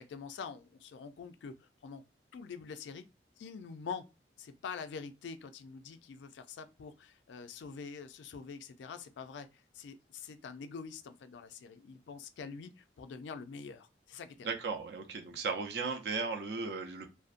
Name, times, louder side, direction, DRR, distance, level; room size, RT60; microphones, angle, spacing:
voice 1, 0.0-2.0 2.3-3.1 3.4-4.0 4.4-9.5 9.7-14.5 15.3-15.4, left 5 dB, 80° left, 0.3 m, -45 dB
voice 2, 14.4-17.1, right 4 dB, 65° right, 0.5 m, -36 dB
2.5 x 2.0 x 2.4 m
head